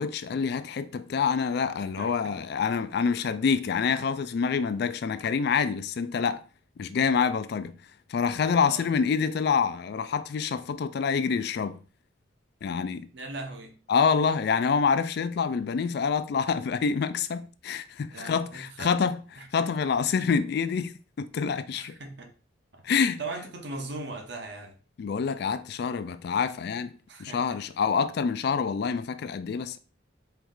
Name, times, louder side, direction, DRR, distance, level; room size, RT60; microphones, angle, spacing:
voice 1, 0.0-6.4 6.8-7.7 8.1-11.8 12.6-13.1 13.9-19.2 19.5-22.0 22.8-23.2 25.0-26.9 27.2-29.8, left 6 dB, 55° left, 0.3 m, -27 dB
voice 2, 2.0-2.3 8.6-8.9 13.1-13.8 18.1-18.9 19.4-19.5 21.8-22.3 22.7-24.8 27.1-27.6, right 2 dB, 60° right, 0.9 m, -39 dB
4.6 x 3.1 x 3.7 m
head